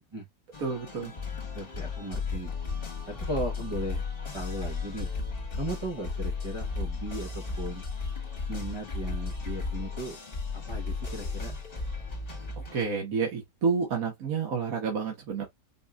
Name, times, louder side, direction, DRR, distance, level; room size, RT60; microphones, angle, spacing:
sound 1, 0.5-12.8, left 4 dB, 35° left, 1.7 m, -35 dB
voice 1, 0.6-1.1 12.6-15.4, right 5 dB, 60° right, 1.7 m, -29 dB
voice 2, 1.6-2.5 3.1-4.0 4.3-5.1 5.6-7.8 8.5-10.2 10.7-11.5, right 1 dB, 25° right, 0.6 m, -36 dB
5.4 x 2.5 x 2.3 m
omnidirectional pair, 1.8 m